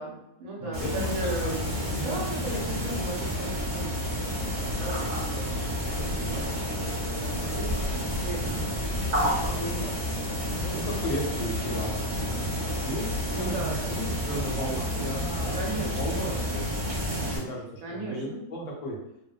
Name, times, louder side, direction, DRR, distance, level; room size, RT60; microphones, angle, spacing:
voice 1, 0.0-8.5 9.2-10.6 13.2-14.0 15.5-16.2 17.8-18.2, right 2 dB, 65° right, -3 dB, 0.9 m, -37 dB
voice 2, 0.6-1.5 1.8-2.1 6.2-6.5 8.4-8.6 10.6-19.0, equal, 75° left, -1 dB, 1.1 m, -35 dB
sound 1, 0.7-17.4, left 1 dB, 35° right, 0.6 m, -30 dB
2.7 x 2.1 x 2.3 m, 0.83 s
omnidirectional pair, 1.7 m